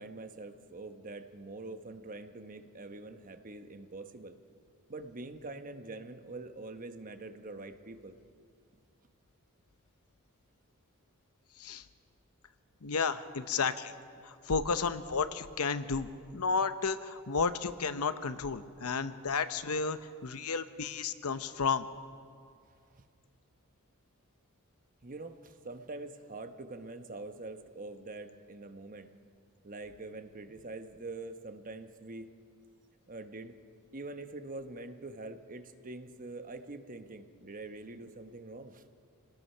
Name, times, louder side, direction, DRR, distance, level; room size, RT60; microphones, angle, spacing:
voice 1, 0.0-4.4 4.9-8.2 22.9-23.0 25.0-29.1 29.6-32.3 33.1-33.6 33.9-38.8, right 2 dB, 40° right, 8 dB, 1.0 m, -44 dB
voice 2, 11.6-11.9 12.8-13.9 14.2-21.9, left 5 dB, 75° left, 11 dB, 0.8 m, -32 dB
26.0 x 19.0 x 5.6 m, 2.3 s
head